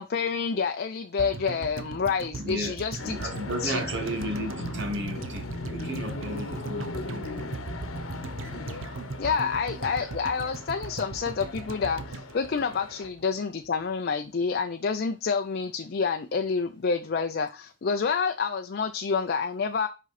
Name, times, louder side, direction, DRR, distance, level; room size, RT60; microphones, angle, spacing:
voice 1, 0.0-3.1 3.6-3.8 9.2-19.9, left 5 dB, 50° left, 0.5 m, -28 dB
sound 1, 1.2-13.4 13.7-13.8, right 3 dB, 75° right, 0.7 m, -39 dB
voice 2, 2.4-2.7 3.0-7.4, right 1 dB, 60° right, 1.6 m, -34 dB
sound 2, 3.0-13.1, left 2 dB, 85° left, 1.0 m, -38 dB
7.4 x 5.4 x 4.1 m
head